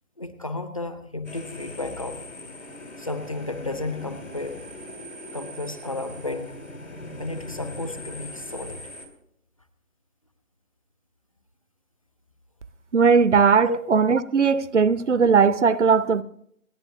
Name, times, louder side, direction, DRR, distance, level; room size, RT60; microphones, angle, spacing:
voice 1, 0.2-2.2 3.0-4.6 5.3-6.6 7.2-8.8 13.7-13.8, left 2 dB, 25° left, 0.6 m, -32 dB
sound 1, 1.2-9.1, left 1 dB, 75° left, 3.2 m, -40 dB
voice 2, 12.9-16.2, right 5 dB, 60° right, 0.6 m, -18 dB
28.0 x 10.0 x 2.7 m
figure-of-eight pair, 150°, 41 cm